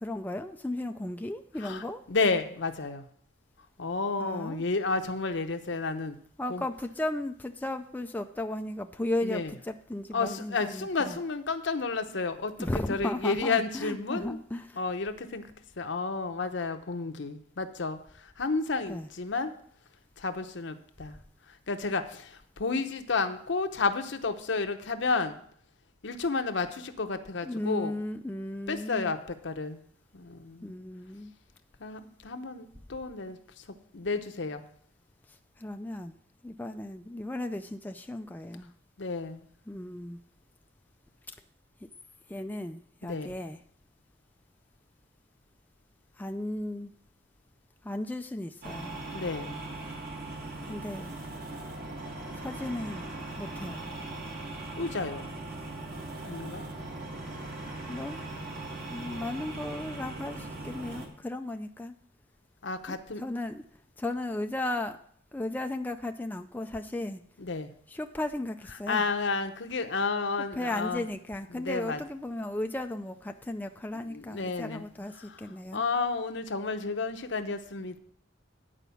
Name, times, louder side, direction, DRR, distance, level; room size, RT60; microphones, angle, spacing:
voice 1, 0.0-2.0 4.2-4.6 6.4-11.2 12.6-14.8 18.9-19.1 27.4-29.1 30.6-31.3 35.3-36.2 36.4-38.7 39.7-40.2 42.3-43.6 46.2-46.9 47.8-49.0 50.7-51.1 52.4-53.9 57.9-58.2 58.9-61.9 62.9-63.6 64.0-65.0 65.3-67.2 67.9-69.0 70.6-75.8, left 1 dB, 10° left, 6 dB, 0.4 m, -35 dB
voice 2, 2.1-3.1 3.8-6.2 6.5-6.6 9.2-9.5 10.1-14.4 14.8-15.4 15.8-19.5 20.2-21.2 21.7-25.3 26.0-27.9 28.7-29.8 30.1-30.7 31.8-33.6 33.9-34.6 39.0-39.4 43.0-43.3 49.1-49.6 54.8-55.3 56.2-56.6 62.6-63.2 67.4-67.7 68.9-71.0 71.5-72.0 74.1-74.9 75.2-75.4 75.7-78.0, left 4 dB, 65° left, 8 dB, 0.8 m, -31 dB
sound 1, 48.6-61.1, right 2 dB, 55° right, 1.8 m, -39 dB
10.0 x 5.0 x 6.9 m, 0.63 s
head